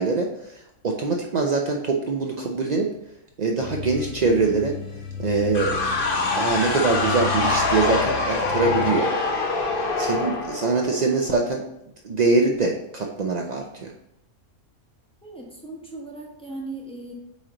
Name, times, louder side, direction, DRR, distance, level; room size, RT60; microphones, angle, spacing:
voice 1, 0.0-2.9 3.4-4.8 5.2-9.1 10.0-11.6 12.0-13.9, right 3 dB, 80° right, 0 dB, 0.3 m, -23 dB
sound 1, 3.6-8.9, left 7 dB, 85° left, 1.3 m, -34 dB
sound 2, 5.5-11.3, left 3 dB, 45° left, 0.9 m, -25 dB
voice 2, 15.2-17.1, right 2 dB, 5° left, -3 dB, 0.9 m, -37 dB
8.4 x 3.2 x 3.8 m, 0.82 s
omnidirectional pair, 1.6 m